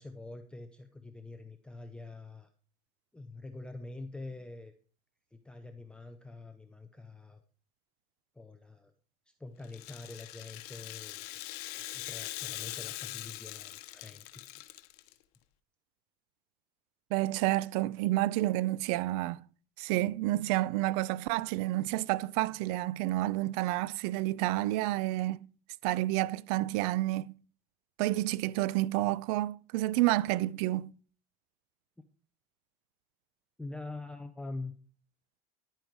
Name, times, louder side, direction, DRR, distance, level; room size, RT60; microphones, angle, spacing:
voice 1, 0.0-2.5 3.1-4.7 5.3-7.4 8.4-8.9 9.4-11.4 11.8-14.6 33.6-34.7, left 2 dB, 5° left, 0.7 m, -45 dB
Rattle (instrument), 9.6-15.1, left 17 dB, 85° left, 1.0 m, -42 dB
voice 2, 17.1-19.4 19.8-25.5 25.8-27.3 28.0-30.9, right 17 dB, 80° right, 0.5 m, -29 dB
11.0 x 9.0 x 4.7 m
cardioid pair, 145°, 19 cm